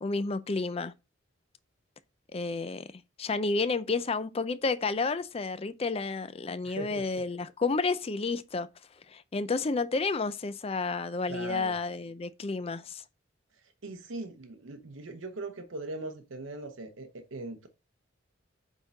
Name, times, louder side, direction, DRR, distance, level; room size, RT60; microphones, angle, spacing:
voice 1, 0.0-0.9 2.3-2.9 3.2-8.7 9.1-13.0, left 3 dB, 30° left, 0.5 m, -31 dB
voice 2, 6.6-7.2 11.3-11.8 13.8-17.7, right 2 dB, 90° right, 0.9 m, -40 dB
8.2 x 3.7 x 4.0 m
head